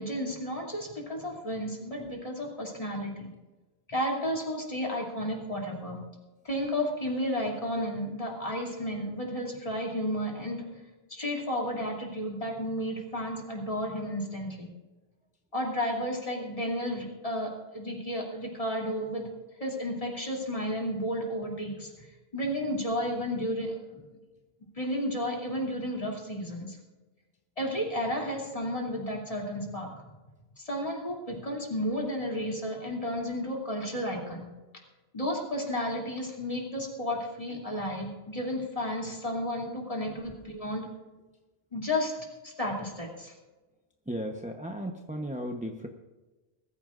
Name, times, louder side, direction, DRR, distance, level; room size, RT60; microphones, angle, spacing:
voice 1, 0.0-3.3 3.9-6.0 6.4-10.7 11.1-14.7 15.5-19.3 19.6-24.0 24.8-26.8 27.6-29.9 30.6-34.5 35.1-40.9 41.7-42.1 42.4-43.3, equal, 30° left, -1 dB, 3.1 m, -32 dB
voice 2, 44.1-45.9, equal, 10° right, 3 dB, 0.8 m, -36 dB
21.5 x 14.5 x 2.6 m, 1.2 s
omnidirectional pair, 1.1 m